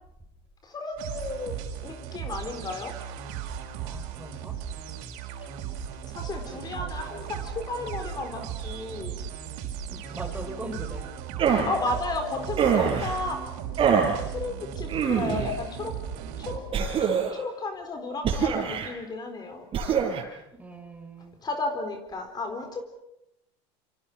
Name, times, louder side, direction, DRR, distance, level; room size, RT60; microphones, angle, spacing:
voice 1, 0.6-1.5 1.8-2.9 6.0-9.3 11.7-13.4 14.3-15.9 16.4-16.6 17.0-19.7 21.4-22.8, left 3 dB, 30° left, 5 dB, 4.1 m, -33 dB
sound 1, 1.0-16.6, right 8 dB, 70° right, 6.1 m, -37 dB
voice 2, 3.8-4.6 6.5-6.9 9.9-11.0 20.6-21.4, right 1 dB, 10° right, 5 dB, 5.8 m, -40 dB
sound 2, 11.4-11.8 12.6-13.1 13.8-14.2 14.9-15.5 16.7-17.4 18.2-18.9 19.7-20.2, right 7 dB, 35° right, 5.3 m, -24 dB
28.5 x 27.0 x 6.2 m, 0.84 s
supercardioid pair, 115°, 15 cm